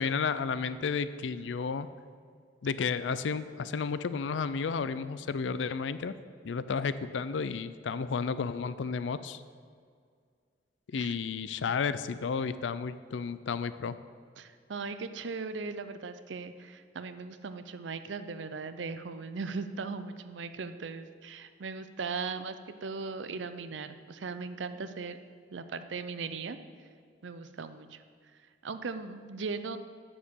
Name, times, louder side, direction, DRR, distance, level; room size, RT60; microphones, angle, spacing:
voice 1, 0.0-1.9 2.6-6.1 6.4-9.4 10.9-14.0, left 5 dB, 90° left, 14 dB, 0.4 m, -32 dB
voice 2, 14.4-22.6 22.8-25.2 25.5-26.6 27.2-28.0 28.6-29.8, right 4 dB, 85° right, 11 dB, 0.6 m, -38 dB
7.3 x 7.0 x 8.2 m, 2.1 s
head